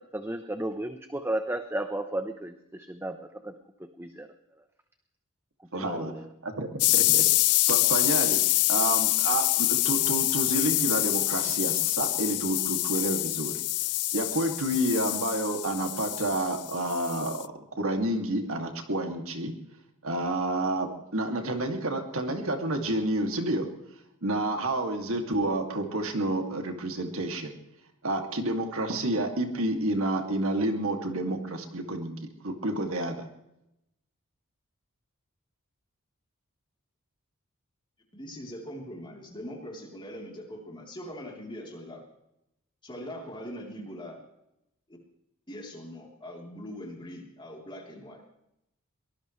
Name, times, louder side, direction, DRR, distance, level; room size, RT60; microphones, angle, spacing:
voice 1, 0.1-3.5 4.0-4.3 5.7-6.2, right 1 dB, 10° right, 8 dB, 0.8 m, -33 dB
voice 2, 5.7-7.2 7.7-13.6 14.1-17.4 17.8-19.6 20.0-23.7 24.2-27.5 28.0-33.2, right 1 dB, 65° right, 4 dB, 2.4 m, -29 dB
sound 1, 6.8-17.4, left 19 dB, 85° left, 0.5 m, -26 dB
voice 3, 38.1-42.0 42.8-44.2 44.9-45.0 45.5-48.2, equal, 20° left, 0 dB, 3.5 m, -41 dB
23.5 x 19.0 x 3.2 m, 0.85 s
head